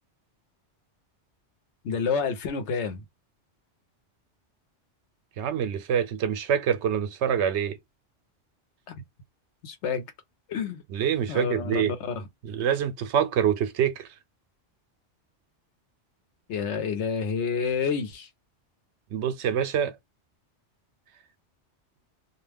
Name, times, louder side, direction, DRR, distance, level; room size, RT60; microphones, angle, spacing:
voice 1, 1.8-3.0 9.6-10.0 10.5-10.8 11.3-12.2 16.5-18.3, left 6 dB, 75° left, 1.0 m, -29 dB
voice 2, 5.4-7.8 10.9-11.9 12.4-14.1 19.1-19.9, right 8 dB, 75° right, 0.8 m, -25 dB
2.4 x 2.2 x 3.3 m
omnidirectional pair, 1.2 m